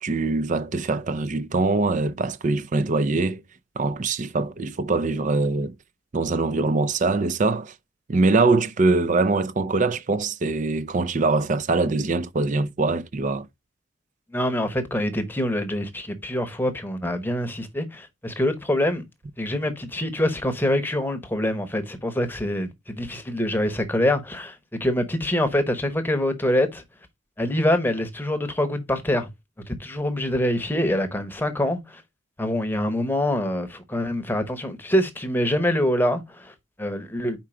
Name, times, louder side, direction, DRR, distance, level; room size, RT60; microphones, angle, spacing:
voice 1, 0.0-3.4 3.8-5.7 6.1-7.7 8.1-13.5, right 3 dB, 40° right, 0.5 m, -23 dB
voice 2, 14.3-19.0 19.4-26.8 27.4-29.3 29.7-32.0 32.4-37.4, left 1 dB, 10° left, 0.9 m, -25 dB
4.7 x 4.4 x 4.8 m
head